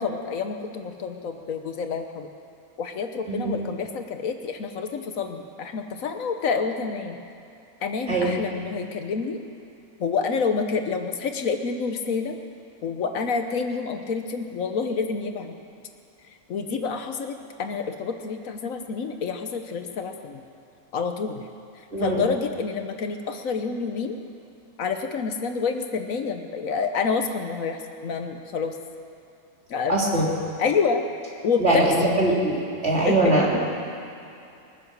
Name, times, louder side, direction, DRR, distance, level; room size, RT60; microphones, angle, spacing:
voice 1, 0.0-2.3 2.8-7.2 7.8-9.4 10.0-12.4 12.8-15.6 16.5-20.4 20.9-21.4 21.8-24.2 24.8-28.8 29.7-30.0 30.6-31.1 31.4-32.1 33.1-33.2, left 5 dB, 70° left, 6 dB, 1.3 m, -28 dB
voice 2, 21.9-22.2 29.9-30.3 31.6-32.6 32.8-33.6, right 2 dB, 50° right, -4 dB, 3.2 m, -21 dB
22.0 x 9.9 x 6.5 m, 2.6 s
omnidirectional pair, 1.5 m